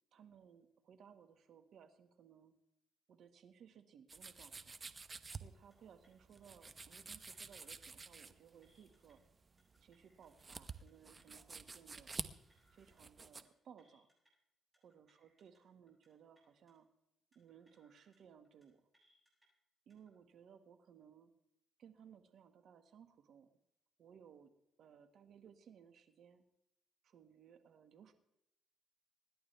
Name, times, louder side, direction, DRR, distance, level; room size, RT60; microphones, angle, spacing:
voice 1, 0.1-2.5 3.1-4.8 5.3-9.2 9.8-12.1 12.7-14.1 14.8-16.9 17.4-18.8 19.9-21.3 21.8-23.5 24.0-24.5 24.8-26.4 27.0-28.1, right 8 dB, 70° right, 8 dB, 1.8 m, -61 dB
sound 1, 4.1-13.4, right 4 dB, 30° right, 1.0 m, -50 dB
sound 2, 5.5-5.8 6.0-6.4 7.0-7.9 8.1-8.3 8.6-9.1 9.6-10.4 10.7-10.9 11.2-11.6 12.2-13.0 13.3-13.5 13.8-14.3 14.7-15.6 15.9-16.1 16.3-16.7 17.3-18.2 18.4-18.7 18.9-19.5 19.9-20.1, equal, 10° right, 7.8 m, -76 dB
26.0 x 11.0 x 3.4 m, 0.81 s
cardioid pair, 90°, 0 cm